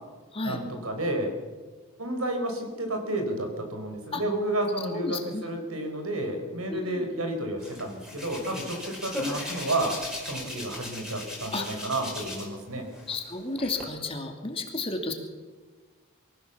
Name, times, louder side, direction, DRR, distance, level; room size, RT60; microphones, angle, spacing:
voice 1, 0.4-1.3 2.0-10.0 10.3-12.8, right 1 dB, 75° right, 4 dB, 4.7 m, -31 dB
voice 2, 4.9-5.5 6.7-7.1 11.5-11.7 13.1-15.1, left 3 dB, 25° left, 3 dB, 2.5 m, -32 dB
Hands, 7.6-12.6 12.9-13.8, left 1 dB, ahead, 5.1 m, -37 dB
23.5 x 16.0 x 7.2 m, 1.4 s
head